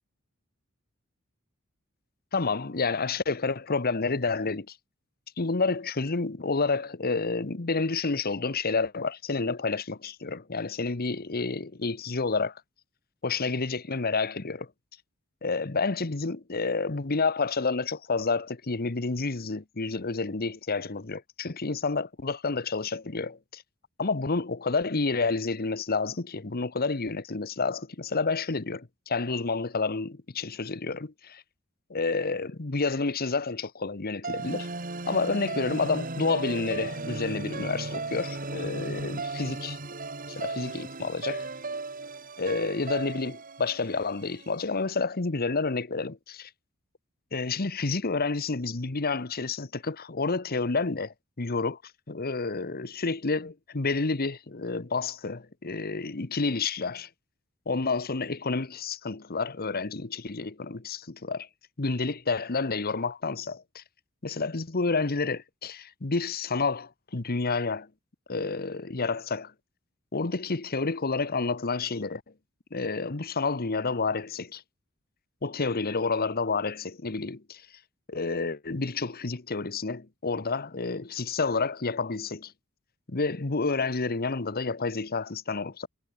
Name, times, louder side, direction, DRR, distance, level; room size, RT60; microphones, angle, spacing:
voice 1, 2.3-4.8 5.4-12.6 13.2-14.7 15.4-23.6 24.0-31.4 31.9-34.7 35.1-39.8 40.3-41.5 42.4-46.5 47.3-51.8 52.1-57.1 57.7-61.5 61.8-63.8 64.2-67.9 68.3-69.5 70.1-72.2 72.7-74.6 75.4-77.7 78.1-82.5 83.1-85.9, left 4 dB, 45° left, 1.1 m, -29 dB
sound 1, 34.2-44.5, right 3 dB, 40° right, 3.4 m, -36 dB
head